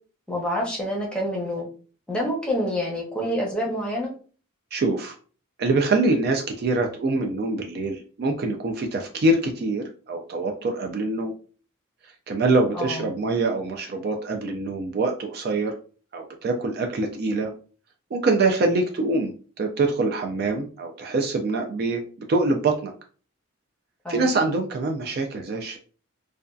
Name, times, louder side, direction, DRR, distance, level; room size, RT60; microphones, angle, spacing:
voice 1, 0.3-1.7 2.1-4.1 12.7-13.1 24.0-24.3, equal, 5° left, -3 dB, 0.7 m, -27 dB
voice 2, 4.7-5.2 5.6-11.3 12.3-15.7 16.1-17.5 18.1-22.0 22.3-22.9 24.1-25.8, right 2 dB, 50° right, 3 dB, 0.3 m, -24 dB
2.5 x 2.2 x 2.3 m, 0.39 s
head